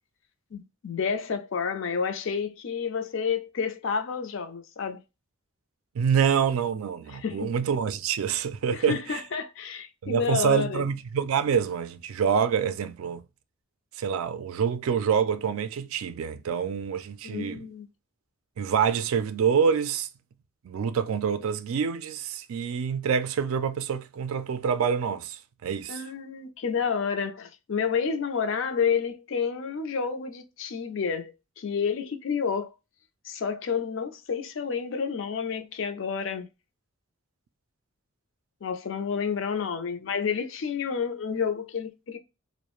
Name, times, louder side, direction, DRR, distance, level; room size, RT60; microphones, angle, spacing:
voice 1, 0.5-5.0 7.1-7.6 8.7-10.8 17.2-17.9 25.9-32.7 33.2-36.5 38.6-42.2, left 6 dB, 60° left, 0.4 m, -30 dB
voice 2, 5.9-9.2 10.0-13.2 14.0-17.7 18.6-20.1 20.6-26.0, right 7 dB, 75° right, 0.3 m, -26 dB
2.4 x 2.0 x 2.9 m
head